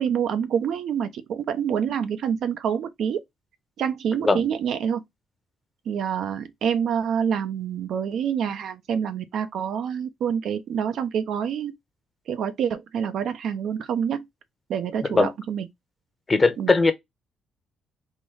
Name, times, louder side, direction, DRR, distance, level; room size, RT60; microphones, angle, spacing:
voice 1, 0.0-3.2 3.8-5.0 5.9-11.7 12.3-14.3 14.7-15.7 16.6-16.7, right 8 dB, 70° right, 0.7 m, -27 dB
voice 2, 16.3-16.9, left 3 dB, 25° left, 0.9 m, -19 dB
3.7 x 2.6 x 4.6 m
cardioid pair, 90°, 0 cm